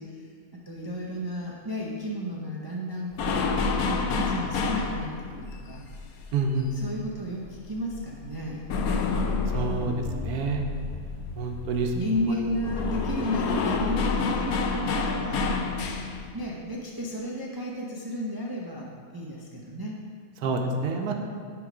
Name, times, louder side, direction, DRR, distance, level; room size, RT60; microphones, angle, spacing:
voice 1, 0.0-3.4 3.9-5.8 6.7-8.6 9.8-10.4 11.9-15.5 16.3-20.0 20.4-20.9, left 1 dB, 30° right, -3 dB, 0.4 m, -33 dB
sound 1, 3.1-7.4 7.7-16.3, left 4 dB, 75° left, 1.1 m, -29 dB
voice 2, 6.3-6.7 9.5-10.6 11.4-11.9 20.4-21.1, right 4 dB, 90° right, 3 dB, 1.2 m, -28 dB
10.5 x 3.6 x 5.0 m, 2.2 s
omnidirectional pair, 1.6 m